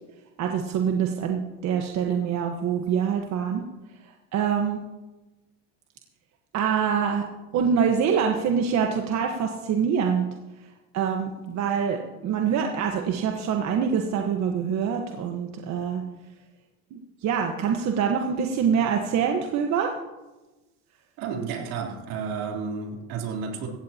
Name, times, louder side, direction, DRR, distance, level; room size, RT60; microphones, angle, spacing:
voice 1, 0.4-3.6 3.9-4.8 6.5-7.3 7.5-10.3 10.6-16.0 16.9-19.9, right 7 dB, 50° right, 3 dB, 1.4 m, -25 dB
voice 2, 21.2-23.7, right 5 dB, 75° right, 0 dB, 3.6 m, -31 dB
16.5 x 15.5 x 2.9 m, 1.1 s
supercardioid pair, 100°, 35 cm